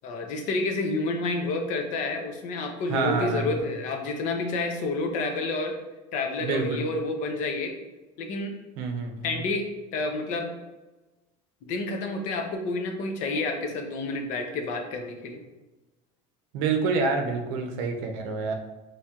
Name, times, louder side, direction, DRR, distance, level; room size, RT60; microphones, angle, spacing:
voice 1, 0.0-5.7 6.1-7.7 8.2-8.5 9.2-9.6 9.9-10.5 11.6-15.4, left 3 dB, 55° left, 4 dB, 0.6 m, -29 dB
voice 2, 2.9-3.6 6.4-6.9 8.8-9.4 16.5-18.5, right 4 dB, 75° right, 4 dB, 0.6 m, -27 dB
4.3 x 3.1 x 2.4 m, 1.1 s
cardioid pair, 160°, 15 cm